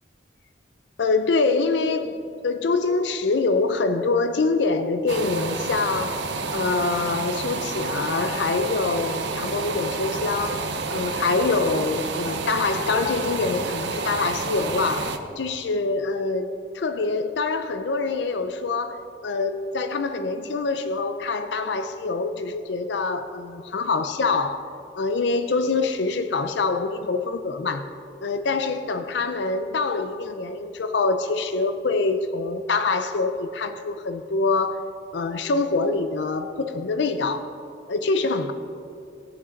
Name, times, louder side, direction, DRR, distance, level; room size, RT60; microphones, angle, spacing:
voice 1, 1.0-24.6 25.0-27.9 28.2-37.5 37.9-38.5, left 3 dB, 70° left, 0.5 m, -25 dB
sound 1, 5.1-15.2, right 4 dB, 70° right, 0.7 m, -29 dB
17.0 x 6.4 x 3.9 m
head